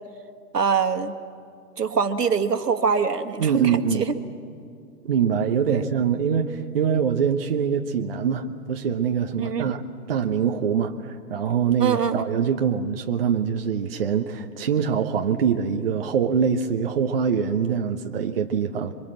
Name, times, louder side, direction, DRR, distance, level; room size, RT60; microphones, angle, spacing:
voice 1, 0.5-1.1 1.8-4.2 5.7-5.8 9.4-9.7 11.8-12.4, right 6 dB, 70° right, 9 dB, 1.8 m, -24 dB
voice 2, 3.4-4.1 5.0-9.8 10.1-18.9, right 7 dB, 35° right, 4 dB, 1.0 m, -24 dB
27.5 x 24.0 x 7.6 m, 2.4 s
figure-of-eight pair, 140°, 50 cm